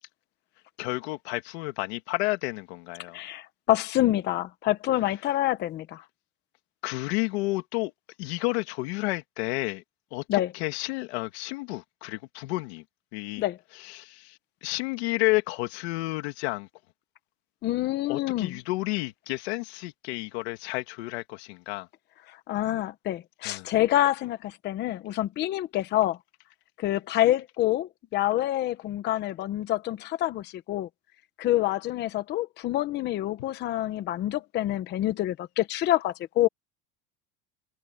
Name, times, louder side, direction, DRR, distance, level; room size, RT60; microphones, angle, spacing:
voice 1, 0.8-3.2 6.8-7.9 8.2-9.8 10.1-10.2 10.5-12.8 13.1-13.4 13.8-16.7 18.1-21.9 23.4-23.7, left 22 dB, 85° left, 2.3 m, -31 dB
voice 2, 3.1-6.0 10.3-10.5 13.4-13.6 17.6-18.6 22.3-26.2 26.8-30.9 31.4-36.5, left 14 dB, 35° left, 0.8 m, -27 dB
cardioid pair, 165°, 31 cm